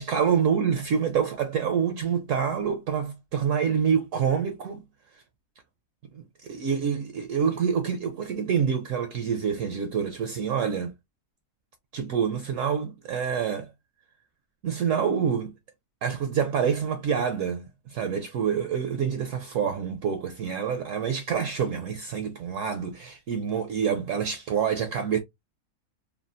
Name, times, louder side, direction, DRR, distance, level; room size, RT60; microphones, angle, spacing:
voice 1, 0.0-4.8 5.1-5.2 6.1-10.9 11.9-13.7 14.6-15.5 16.0-25.2, right 7 dB, 70° right, 0.8 m, -27 dB
3.3 x 2.2 x 2.5 m
omnidirectional pair, 1.6 m